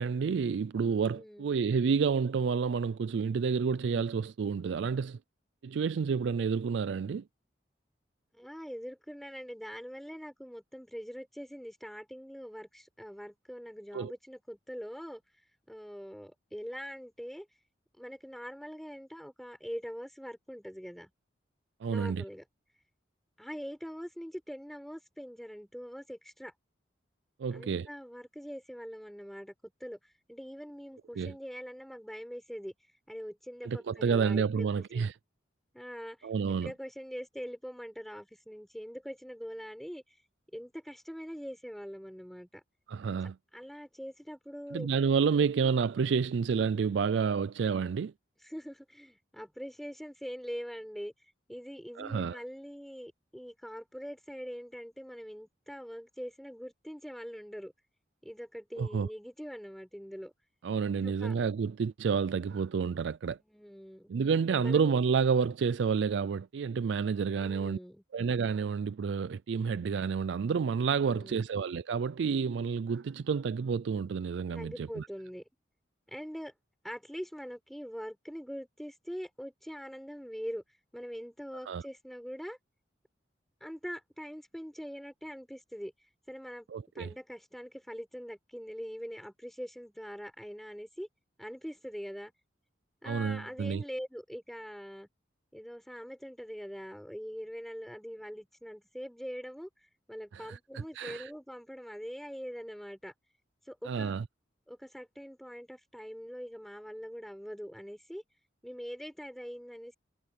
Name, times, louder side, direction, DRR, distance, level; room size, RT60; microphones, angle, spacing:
voice 1, 0.0-5.2 5.6-7.2 13.9-14.1 21.8-22.2 27.4-27.9 31.2-31.3 33.6-35.1 36.2-36.7 42.9-43.4 44.7-48.1 52.0-52.4 58.8-59.1 60.6-63.4 64.1-67.8 68.1-75.1 81.7-81.8 86.7-87.1 93.1-93.8 100.3-101.3 103.8-104.2, right 6 dB, 75° right, 0.4 m, -29 dB
voice 2, 1.1-1.5 8.3-15.2 15.7-17.5 18.0-21.1 21.9-22.4 23.4-26.5 27.5-29.5 29.8-30.0 30.3-32.7 33.1-35.1 35.7-40.0 40.5-42.6 43.5-44.9 45.3-45.6 48.4-51.1 51.5-57.7 58.2-60.3 61.0-61.3 63.3-64.1 64.5-64.9 67.4-68.0 71.0-71.5 74.5-75.4 76.1-76.5 76.8-80.6 80.9-82.6 83.6-85.9 86.3-86.7 86.9-91.1 91.4-92.3 93.0-95.1 95.5-99.7 100.1-103.1 103.7-104.1 104.7-108.2 108.6-110.0, equal, ahead, 5.2 m, -43 dB
head